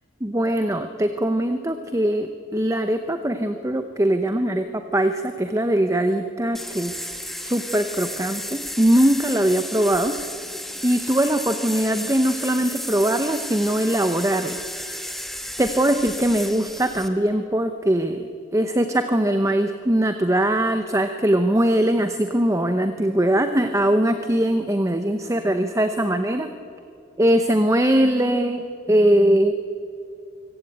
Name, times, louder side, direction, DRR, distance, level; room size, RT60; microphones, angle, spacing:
voice 1, 0.2-7.0 7.4-10.2 10.8-15.1 15.6-26.5 27.2-29.5, right 1 dB, 15° right, 8 dB, 0.8 m, -21 dB
sound 1, 6.5-17.1, left 1 dB, ahead, 1.4 m, -33 dB
24.5 x 16.0 x 8.8 m, 2.5 s
head